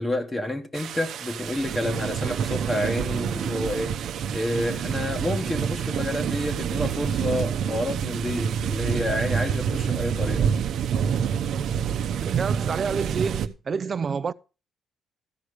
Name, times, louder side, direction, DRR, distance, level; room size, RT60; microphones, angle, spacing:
voice 1, 0.0-4.0 4.3-10.5, left 1 dB, 15° left, 1.3 m, -29 dB
sound 1, 0.7-13.5, right 8 dB, 65° right, 0.8 m, -27 dB
voice 2, 12.1-14.3, right 5 dB, 35° right, 0.5 m, -28 dB
14.0 x 4.9 x 6.4 m
cardioid pair, 120°, 0 cm